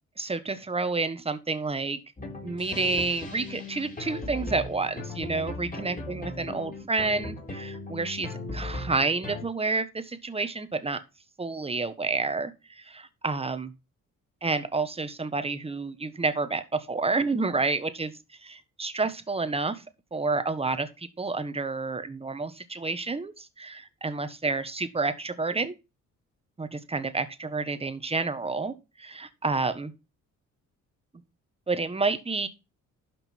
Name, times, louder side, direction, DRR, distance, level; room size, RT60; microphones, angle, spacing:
voice 1, 0.2-2.0 2.4-11.0 11.4-13.7 14.4-18.1 18.4-19.8 20.1-25.7 26.6-29.9 31.7-32.5, right 3 dB, 20° right, 1.4 m, -29 dB
sound 1, 2.2-9.4, left 2 dB, 25° left, 4.2 m, -38 dB
12.0 x 5.2 x 4.5 m
cardioid pair, 90°, 30 cm